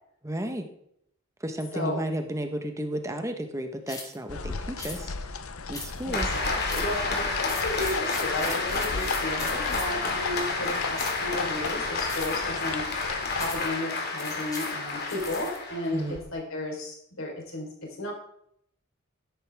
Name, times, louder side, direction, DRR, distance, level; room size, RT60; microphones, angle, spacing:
voice 1, 0.2-0.7 1.4-5.4 5.7-6.3 15.9-16.2, right 1 dB, 15° right, 6 dB, 1.2 m, -33 dB
sound 1, 3.9-4.2 4.8-5.0 5.7-6.1 6.7-7.0 7.4-10.0 10.9-11.3 12.1-12.5 13.4-13.7 14.2-15.6, left 3 dB, 15° left, 2.3 m, -40 dB
sound 2, 4.3-13.7, left 4 dB, 85° left, 0.8 m, -36 dB
voice 2, 6.0-12.8 13.3-16.0 16.3-18.1, left 2 dB, 70° left, 0 dB, 4.0 m, -33 dB
Applause, 6.1-16.2, left 3 dB, 50° left, 2.4 m, -30 dB
13.0 x 11.0 x 3.5 m, 0.72 s
head